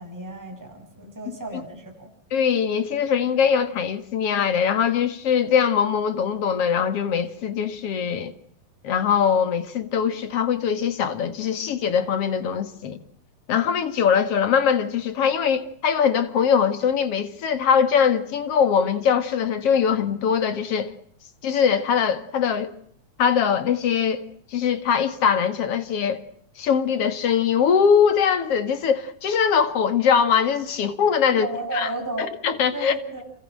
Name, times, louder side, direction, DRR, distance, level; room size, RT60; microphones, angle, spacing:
voice 1, 0.0-2.1 31.3-32.3 32.7-33.2, right 1 dB, 5° right, 7.0 m, -33 dB
voice 2, 2.3-8.3 8.8-13.0 13.5-20.9 21.4-22.7 23.2-24.2 24.5-26.2 26.6-31.5 31.7-31.9 32.4-32.9, left 7 dB, 50° left, 2.6 m, -22 dB
27.5 x 25.0 x 7.7 m
omnidirectional pair, 3.8 m